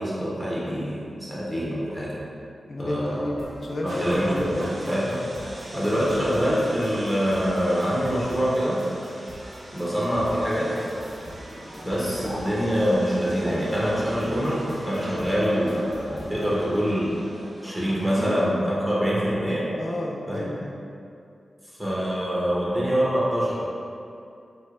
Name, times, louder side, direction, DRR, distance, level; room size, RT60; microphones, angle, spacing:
voice 1, 0.0-2.2 2.8-3.3 3.8-5.2 5.7-8.8 9.7-10.7 11.9-14.6 14.9-17.2 17.6-19.7 20.3-20.5 21.8-23.5, equal, 10° right, -7 dB, 0.6 m, -25 dB
voice 2, 2.7-4.5 4.8-5.0 15.1-15.3 18.1-18.3 19.8-20.7, left 1 dB, 55° left, -2 dB, 0.4 m, -31 dB
sound 1, 3.4-16.5, equal, 30° right, 1.2 m, -43 dB
sound 2, 3.9-18.5, equal, 55° right, 0.5 m, -42 dB
sound 3, 9.9-17.1, equal, 75° right, 1.1 m, -43 dB
3.2 x 3.0 x 2.4 m, 2.5 s
wide cardioid pair, 85°, 0 cm